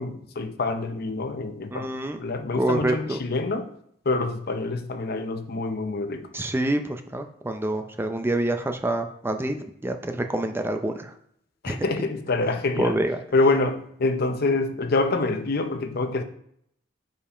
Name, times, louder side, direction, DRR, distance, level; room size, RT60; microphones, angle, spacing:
voice 1, 0.0-1.9 2.2-3.7 4.0-6.3 11.6-13.0 13.3-16.2, left 3 dB, 55° left, 0.7 m, -26 dB
voice 2, 1.7-2.2 2.5-3.2 6.3-11.1 11.7-11.8 12.8-13.2, right 1 dB, 10° right, 0.5 m, -27 dB
5.4 x 5.1 x 4.9 m
head